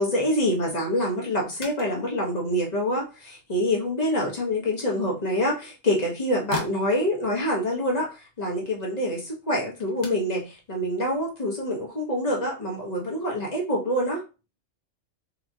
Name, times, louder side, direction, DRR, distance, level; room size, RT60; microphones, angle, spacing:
voice 1, 0.0-14.2, equal, 35° left, -2 dB, 1.1 m, -26 dB
sound 1, 1.4-11.9, left 5 dB, 80° left, 1.4 m, -44 dB
3.9 x 3.0 x 2.7 m, 0.31 s
omnidirectional pair, 1.3 m